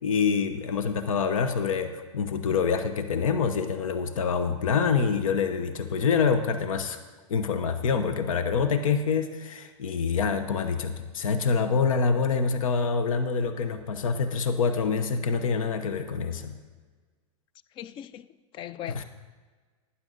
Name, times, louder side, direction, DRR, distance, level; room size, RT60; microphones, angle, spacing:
voice 1, 0.0-7.0 7.3-16.6 18.9-19.0, left 5 dB, 80° left, 0.9 m, -26 dB
voice 2, 17.8-18.3 18.5-19.0, left 11 dB, 30° left, 0.4 m, -38 dB
12.0 x 9.7 x 3.9 m
hypercardioid pair, 120°, 17 cm